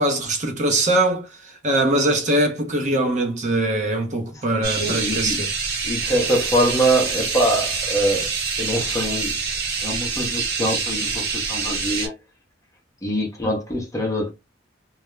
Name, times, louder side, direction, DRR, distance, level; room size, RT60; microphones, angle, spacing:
voice 1, 0.0-5.5, right 1 dB, 40° right, 0.6 m, -22 dB
sound 1, 4.6-12.1, right 5 dB, 55° right, 0.9 m, -26 dB
voice 2, 4.8-5.4 5.8-8.3 8.6-9.4 9.8-12.1 13.0-14.3, right 1 dB, 15° left, 0.6 m, -23 dB
2.3 x 2.0 x 3.0 m
head